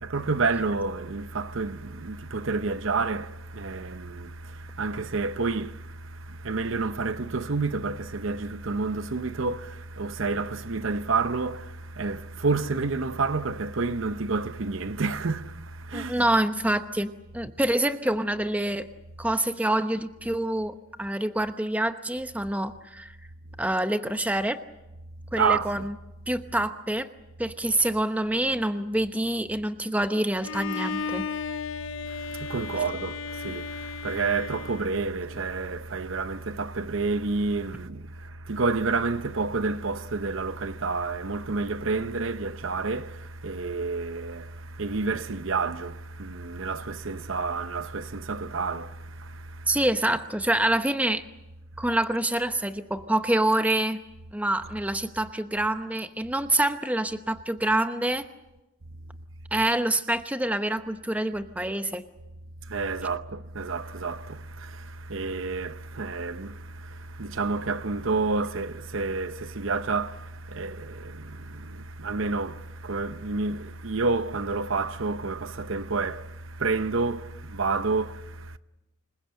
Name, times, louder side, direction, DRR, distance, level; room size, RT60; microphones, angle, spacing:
voice 1, 0.0-16.3 25.3-25.9 32.1-49.8 62.7-78.6, right 4 dB, 65° right, 0.8 m, -29 dB
voice 2, 15.9-18.9 19.2-23.1 23.6-24.6 25.3-26.0 26.3-27.1 27.4-31.3 49.7-51.2 51.8-54.0 54.3-58.3 59.5-62.0, right 1 dB, 5° right, 0.9 m, -26 dB
Bowed string instrument, 30.4-35.4, left 5 dB, 70° left, 0.9 m, -35 dB
27.0 x 22.0 x 7.7 m
head